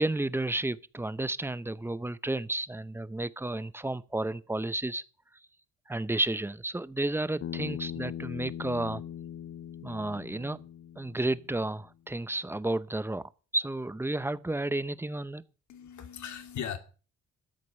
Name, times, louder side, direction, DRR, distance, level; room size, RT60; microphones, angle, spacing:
voice 1, 0.0-5.0 5.9-9.0 9.8-10.6 11.0-13.2 13.5-15.4, right 2 dB, 10° right, 0.7 m, -32 dB
Bass guitar, 7.4-11.7, left 10 dB, 50° left, 0.7 m, -40 dB
voice 2, 15.7-16.8, left 8 dB, 70° left, 2.3 m, -38 dB
13.0 x 8.1 x 6.5 m
cardioid pair, 90°, 30 cm